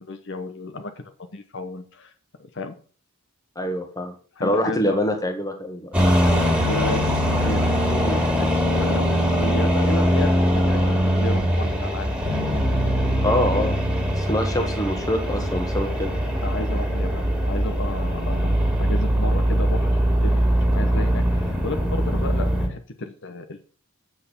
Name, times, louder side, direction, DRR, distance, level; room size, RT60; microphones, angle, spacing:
voice 1, 0.0-2.1 2.4-2.7 4.4-5.0 6.7-8.5 8.8-12.1 16.4-20.4 20.7-23.6, left 2 dB, 55° left, 7 dB, 1.0 m, -33 dB
voice 2, 3.5-4.1 4.4-6.1 13.2-13.7 14.1-16.1, left 1 dB, 15° left, 5 dB, 1.5 m, -25 dB
sound 1, 5.9-22.7, equal, 5° right, 2.5 m, -21 dB
8.1 x 6.5 x 6.9 m, 0.42 s
head